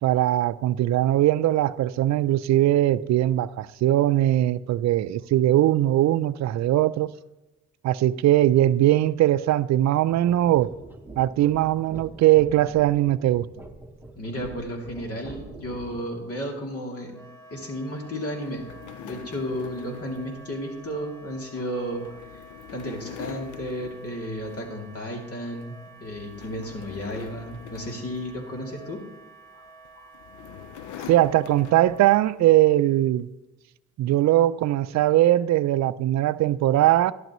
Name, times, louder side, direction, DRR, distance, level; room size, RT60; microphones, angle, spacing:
voice 1, 0.0-7.1 7.8-10.7 11.2-13.5 31.1-33.3 34.0-37.1, right 14 dB, 65° right, 0.5 m, -20 dB
sound 1, 10.1-16.3, right 2 dB, 5° right, 1.1 m, -44 dB
voice 2, 14.2-17.2 17.5-22.4 22.7-29.0 29.5-29.7 29.9-30.1, equal, 50° left, 2.8 m, -33 dB
Wind instrument woodwind instrument, 17.1-32.4, right 3 dB, 10° left, 1.4 m, -49 dB
sound 2, 18.4-25.0 25.3-25.6 26.0-29.0 29.8-32.3, left 11 dB, 80° left, 0.5 m, -44 dB
12.0 x 11.0 x 3.1 m
cardioid pair, 90°, 30 cm